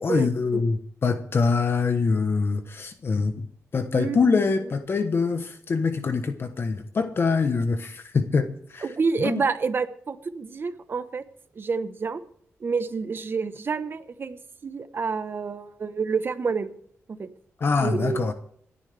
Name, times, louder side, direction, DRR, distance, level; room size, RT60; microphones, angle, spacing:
voice 1, 0.0-3.5 3.7-8.9 9.2-9.4 17.6-18.3, left 4 dB, 50° left, 1.1 m, -24 dB
voice 2, 8.8-11.2 11.6-12.2 12.6-16.7 17.1-17.3 17.8-18.3, right 5 dB, 45° right, 1.1 m, -28 dB
28.0 x 9.8 x 3.5 m
cardioid pair, 100°, 5 cm